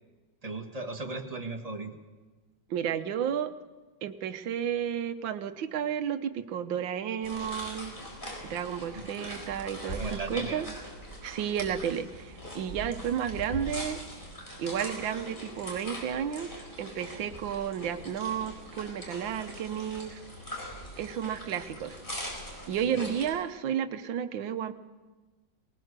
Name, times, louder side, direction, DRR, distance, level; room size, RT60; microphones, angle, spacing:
voice 1, 0.4-2.0 8.9-9.1 9.9-10.8 12.8-12.9 22.8-23.0, right 3 dB, 20° right, 3 dB, 1.7 m, -37 dB
voice 2, 2.7-3.5 4.0-7.9 8.4-10.7 11.2-14.0 14.6-20.2 21.0-22.0 22.7-24.7, right 9 dB, 80° right, 9 dB, 1.7 m, -32 dB
sound 1, 7.2-23.3, equal, 25° left, 4.8 m, -41 dB
20.0 x 19.5 x 6.7 m, 1.3 s
omnidirectional pair, 2.1 m